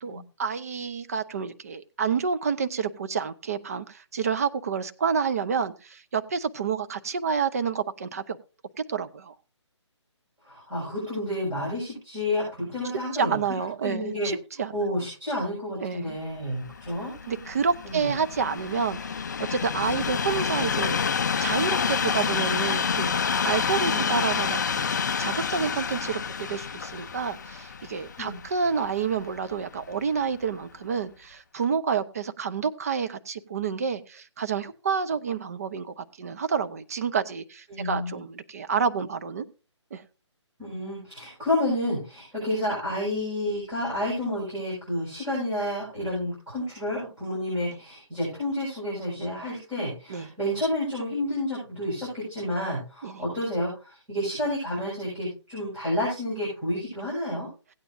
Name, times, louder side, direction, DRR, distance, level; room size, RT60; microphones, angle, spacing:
voice 1, 0.0-8.4 8.9-9.3 13.1-14.7 15.8-16.2 17.3-21.0 21.4-24.8 25.2-39.5 39.9-40.0 47.7-47.8 50.1-50.3 53.0-53.2, right 6 dB, 30° right, 11 dB, 0.7 m, -29 dB
voice 2, 10.4-13.4 13.8-14.3 14.7-17.1 17.8-18.1 23.8-24.1 28.2-28.4 37.7-38.2 40.6-57.5, left 1 dB, 10° right, -10 dB, 6.0 m, -30 dB
Train, 16.5-29.7 30.4-30.6, left 6 dB, 40° left, 0.5 m, -28 dB
17.0 x 9.1 x 2.6 m, 0.34 s
hypercardioid pair, 170°, 16 cm